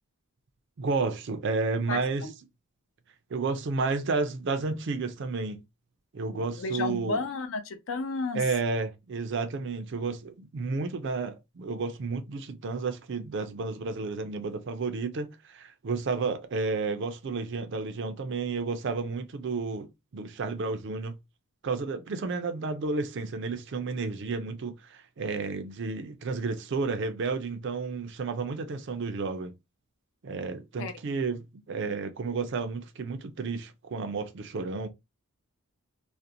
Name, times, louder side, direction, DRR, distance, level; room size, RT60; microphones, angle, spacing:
voice 1, 0.8-2.3 3.3-5.6 6.1-7.2 8.3-21.2 21.6-29.5 30.2-34.9, right 4 dB, 55° right, 0.4 m, -31 dB
voice 2, 1.9-2.3 6.3-8.4 30.8-30.9, left 3 dB, 65° left, 0.5 m, -33 dB
2.5 x 2.1 x 2.6 m
head